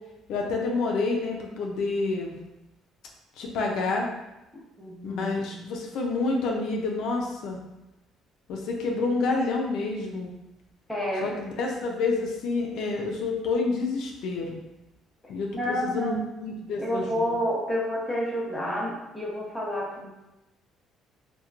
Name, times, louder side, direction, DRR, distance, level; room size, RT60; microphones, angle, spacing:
voice 1, 0.3-2.3 3.4-4.1 5.0-7.6 8.5-10.3 11.2-14.6 15.3-17.3, left 3 dB, 75° left, 0 dB, 0.4 m, -28 dB
voice 2, 4.8-5.3 5.6-5.7 10.9-11.3 15.5-16.2 16.8-20.1, equal, 5° left, -5 dB, 0.7 m, -29 dB
2.8 x 2.1 x 2.4 m, 0.96 s
cardioid pair, 130°, 0 cm